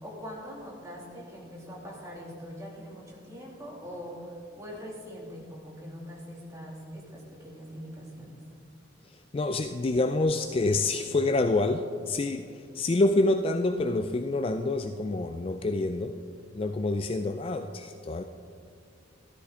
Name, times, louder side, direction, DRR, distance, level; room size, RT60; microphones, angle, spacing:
voice 1, 0.0-8.4, equal, 15° right, -3 dB, 2.4 m, -42 dB
voice 2, 9.3-16.1 16.5-18.2, left 2 dB, 30° left, 8 dB, 0.3 m, -27 dB
13.5 x 13.0 x 3.7 m, 2.3 s
head